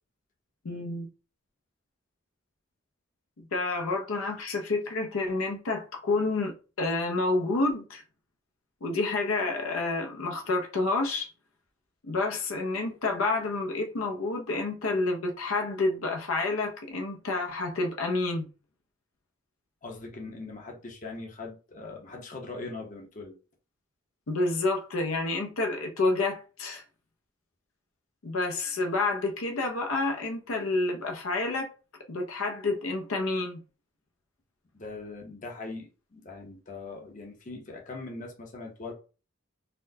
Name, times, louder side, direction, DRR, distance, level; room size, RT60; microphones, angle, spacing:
voice 1, 0.6-1.1 3.4-8.0 8.8-11.3 12.0-18.5 24.3-26.8 28.2-31.7 32.1-33.6, left 3 dB, 75° left, 0.6 m, -29 dB
voice 2, 19.8-23.4 34.7-38.9, left 3 dB, 35° left, 0.7 m, -41 dB
4.2 x 2.1 x 2.7 m
head